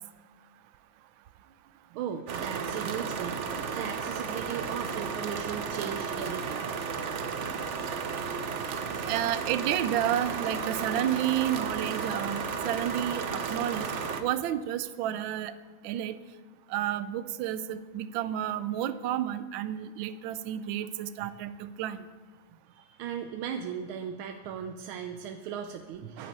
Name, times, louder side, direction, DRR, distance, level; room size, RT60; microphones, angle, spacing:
voice 1, 1.9-6.7 23.0-26.3, right 8 dB, 90° right, 6 dB, 1.6 m, -37 dB
sound 1, 2.3-14.2, right 5 dB, 60° right, 0.7 m, -33 dB
voice 2, 9.1-13.9 14.2-15.5 15.8-16.2 16.7-22.0, right 11 dB, 75° right, 12 dB, 1.3 m, -31 dB
11.0 x 8.8 x 8.1 m, 1.3 s
omnidirectional pair, 2.2 m